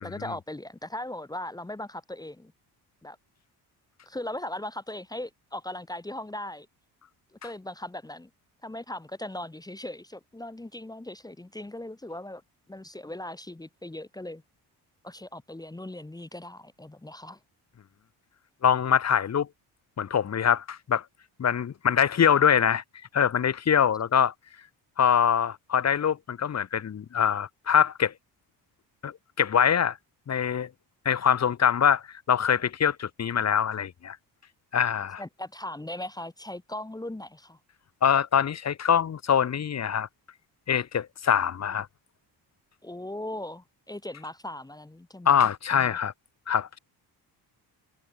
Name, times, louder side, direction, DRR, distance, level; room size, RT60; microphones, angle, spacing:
voice 1, 0.0-2.5 3.0-3.2 4.1-6.7 7.3-8.3 8.6-12.4 12.7-14.4 15.0-17.4 35.2-37.6 42.8-45.4 45.7-46.0, left 1 dB, 10° left, 1.4 m, -38 dB
voice 2, 18.6-19.5 20.0-21.0 21.4-22.8 23.1-24.3 25.0-28.1 29.0-30.0 30.3-30.7 31.0-34.2 34.7-35.2 38.0-40.1 40.7-41.9 45.2-46.1 46.5-46.8, left 8 dB, 40° left, 1.4 m, -24 dB
cardioid pair, 105°, 40 cm